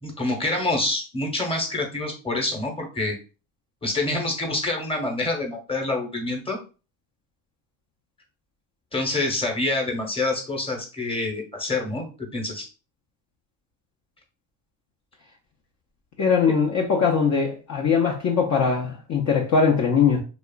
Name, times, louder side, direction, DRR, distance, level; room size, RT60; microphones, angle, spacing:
voice 1, 0.0-3.2 3.8-6.6 8.9-12.7, left 2 dB, 15° left, 0.9 m, -27 dB
voice 2, 16.2-20.2, left 6 dB, 40° left, 0.6 m, -21 dB
3.0 x 2.3 x 2.3 m
cardioid pair, 90°, 43 cm